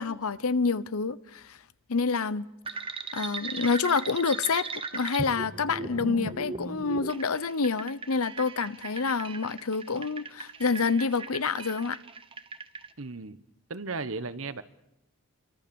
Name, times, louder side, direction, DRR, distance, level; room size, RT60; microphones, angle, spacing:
voice 1, 0.0-1.6 1.9-2.5 3.1-4.7 4.9-12.0, left 4 dB, 80° left, 0.9 m, -28 dB
sound 1, 2.7-12.9, right 3 dB, 25° right, 1.1 m, -38 dB
voice 2, 13.0-13.4 13.7-14.6, right 3 dB, 70° right, 1.2 m, -35 dB
28.0 x 24.0 x 7.1 m
head